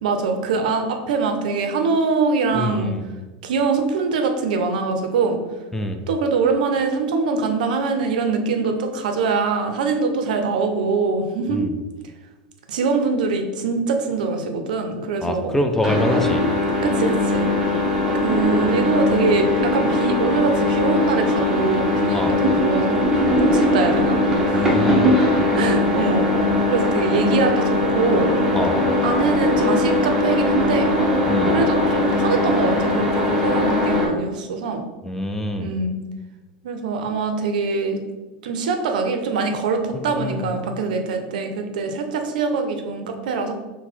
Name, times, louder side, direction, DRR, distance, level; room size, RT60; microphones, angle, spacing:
voice 1, 0.0-3.0 3.4-5.4 6.1-11.7 12.7-15.5 16.1-16.2 16.8-17.5 18.2-24.2 24.5-24.8 25.5-26.3 26.7-28.3 29.0-30.9 31.5-34.8 35.6-36.0 36.6-38.0 38.4-43.5, right 4 dB, 90° right, 5 dB, 0.5 m, -23 dB
voice 2, 2.5-3.0 5.7-6.0 11.5-11.7 15.2-16.4 22.1-22.3 24.5-25.2 28.5-28.8 31.3-31.6 35.0-35.7 39.9-40.5, left 1 dB, 10° left, 5 dB, 0.4 m, -25 dB
sound 1, 15.8-34.1, left 1 dB, 10° right, 0.8 m, -20 dB
4.0 x 2.1 x 4.4 m, 1.2 s
supercardioid pair, 125°, 4 cm